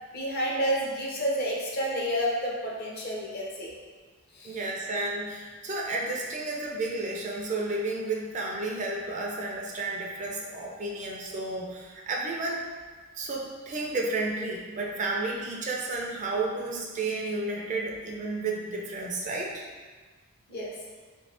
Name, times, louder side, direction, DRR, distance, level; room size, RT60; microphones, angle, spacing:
voice 1, 0.1-3.7 4.3-4.6 20.5-20.7, equal, 45° left, -3 dB, 0.6 m, -30 dB
voice 2, 4.4-12.6 13.2-19.6, right 2 dB, 35° right, -1 dB, 0.4 m, -32 dB
3.1 x 2.6 x 3.2 m, 1.4 s
head